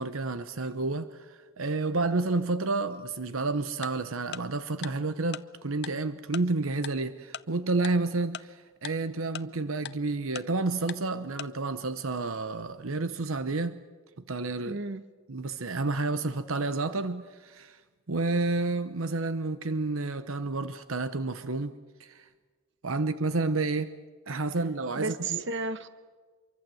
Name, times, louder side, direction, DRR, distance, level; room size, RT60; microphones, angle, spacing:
voice 1, 0.0-13.8 14.3-14.8 15.3-17.8 18.1-21.7 22.0-22.3 22.8-23.9 24.3-25.4, right 3 dB, 80° right, 1.0 m, -30 dB
Tick-tock, 3.8-3.9 4.3-4.4 4.8-4.9 5.3-5.4 5.8-5.9 6.3-6.4 6.8-6.9 7.3-7.4 7.8-7.9 8.3-8.4 8.8-8.9 9.3-9.4 9.8-9.9 10.3-10.4 10.9-11.0 11.4-11.5, left 8 dB, 55° left, 0.7 m, -37 dB
voice 2, 14.6-15.0 25.0-25.9, right 3 dB, 60° right, 1.2 m, -33 dB
26.5 x 23.5 x 7.8 m
head